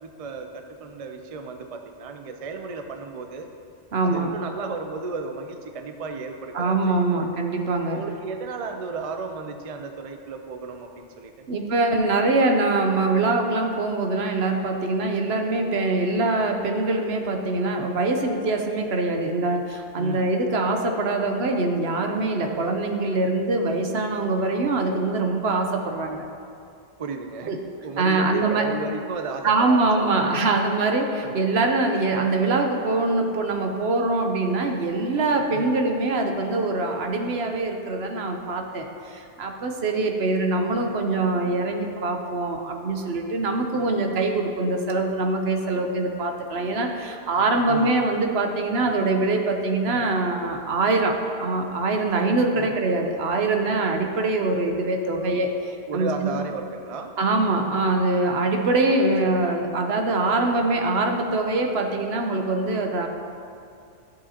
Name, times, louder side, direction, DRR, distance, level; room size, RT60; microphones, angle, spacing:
voice 1, 0.0-3.5 4.0-7.3 7.9-11.5 19.9-20.4 27.0-27.6 27.8-30.6 31.2-31.4 35.5-35.8 47.7-48.0 52.6-52.7 55.9-57.1 59.2-59.4, right 4 dB, 45° right, 5 dB, 0.4 m, -34 dB
voice 2, 3.9-4.3 6.5-8.0 11.5-26.3 27.5-27.6 28.0-28.7 29.4-55.6 55.9-56.4 57.2-63.1, right 2 dB, 65° right, 3 dB, 1.0 m, -23 dB
13.5 x 7.8 x 2.9 m, 2.5 s
omnidirectional pair, 1.2 m